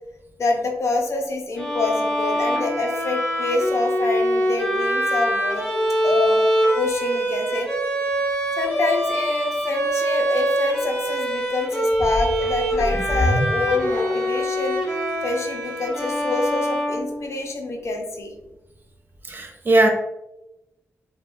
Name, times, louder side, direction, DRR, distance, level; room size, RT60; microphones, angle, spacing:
voice 1, 0.4-5.7 6.0-6.4 6.8-7.7 8.6-14.8 15.2-18.3, left 3 dB, 65° left, 3 dB, 0.5 m, -26 dB
Bowed string instrument, 1.6-17.6, equal, 10° left, 1.1 m, -24 dB
sound 1, 11.9-14.5 15.1-15.2, equal, 40° left, 1.2 m, -27 dB
voice 2, 19.2-19.9, right 2 dB, 40° right, 2 dB, 0.5 m, -18 dB
3.1 x 2.2 x 2.5 m, 0.94 s
wide cardioid pair, 90°, 5 cm